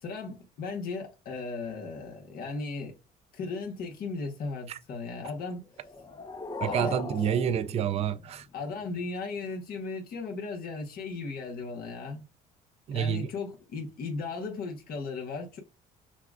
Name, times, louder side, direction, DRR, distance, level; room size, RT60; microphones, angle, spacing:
voice 1, 0.0-2.9 3.3-5.7 6.6-7.0 8.5-12.2 12.9-15.6, left 4 dB, 60° left, 1.4 m, -36 dB
sound 1, 5.7-8.7, left 4 dB, 25° left, 0.7 m, -38 dB
voice 2, 6.6-8.4 12.9-13.2, right 9 dB, 40° right, 0.4 m, -28 dB
5.8 x 2.3 x 2.4 m
cardioid pair, 110°, 17 cm